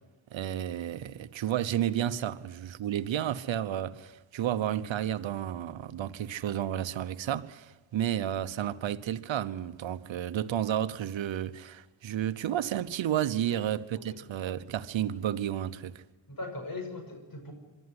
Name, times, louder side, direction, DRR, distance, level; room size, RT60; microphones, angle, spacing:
voice 1, 0.3-16.0, right 11 dB, 65° right, 1.1 m, -32 dB
voice 2, 13.9-14.3 16.3-17.5, left 2 dB, 45° left, 5.9 m, -40 dB
24.0 x 12.5 x 9.7 m
cardioid pair, 70°, 49 cm